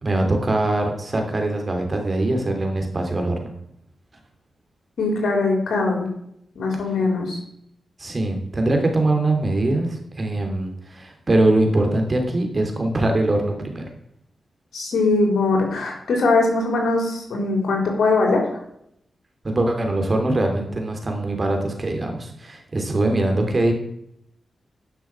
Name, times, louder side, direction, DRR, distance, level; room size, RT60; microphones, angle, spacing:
voice 1, 0.0-3.5 8.0-13.9 19.4-23.7, right 2 dB, 35° right, 4 dB, 3.0 m, -22 dB
voice 2, 5.0-6.1 6.6-7.4 14.7-18.4, left 3 dB, 80° left, 1 dB, 3.7 m, -21 dB
11.0 x 6.2 x 5.8 m, 0.74 s
cardioid pair, 60°, 0 cm